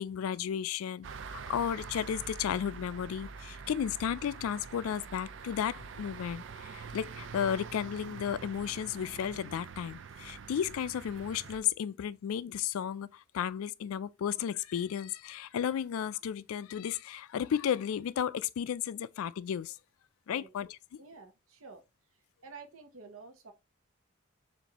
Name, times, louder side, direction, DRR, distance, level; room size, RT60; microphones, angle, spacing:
voice 1, 0.0-19.8 20.3-20.8, left 8 dB, 90° left, 0.3 m, -34 dB
sound 1, 1.0-11.6, right 5 dB, 60° right, 0.4 m, -45 dB
voice 2, 21.0-21.8 22.4-23.5, right 4 dB, 80° right, 0.8 m, -50 dB
7.0 x 2.6 x 2.8 m
head